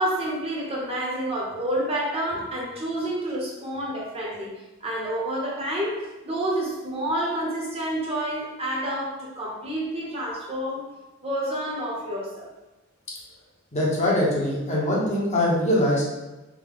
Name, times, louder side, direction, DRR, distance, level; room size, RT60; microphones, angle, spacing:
voice 1, 0.0-4.5 4.8-10.9 11.2-12.5, right 1 dB, 30° right, -4 dB, 0.9 m, -29 dB
voice 2, 13.7-16.1, left 1 dB, 35° left, -5 dB, 0.9 m, -22 dB
3.5 x 2.2 x 3.6 m, 1.1 s
head